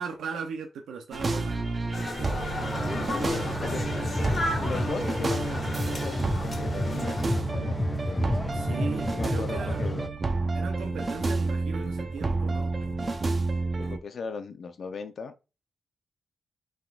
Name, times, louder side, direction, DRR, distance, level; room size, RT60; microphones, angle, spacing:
voice 1, 0.0-1.6 8.5-9.9 10.5-12.7, right 5 dB, 85° right, 0.8 m, -37 dB
sound 1, 1.1-14.0, right 3 dB, 35° right, 0.7 m, -30 dB
sound 2, 1.9-7.4, left 2 dB, 35° left, 1.5 m, -35 dB
sound 3, 2.6-10.1, left 1 dB, 10° left, 0.3 m, -31 dB
voice 2, 2.9-3.8 4.6-8.5 9.1-10.1 13.8-15.3, left 5 dB, 55° left, 0.7 m, -38 dB
5.7 x 3.7 x 2.5 m
cardioid pair, 110°, 0 cm